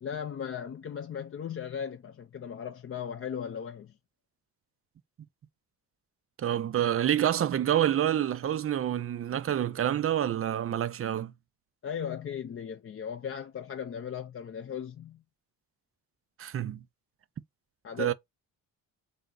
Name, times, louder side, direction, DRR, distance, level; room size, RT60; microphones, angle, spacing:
voice 1, 0.0-4.0 11.8-15.2 17.8-18.1, left 8 dB, 30° left, 0.5 m, -37 dB
voice 2, 6.4-11.3 16.4-16.8 18.0-18.1, right 11 dB, 30° right, 0.4 m, -27 dB
3.7 x 2.7 x 3.7 m
hypercardioid pair, 45°, 48 cm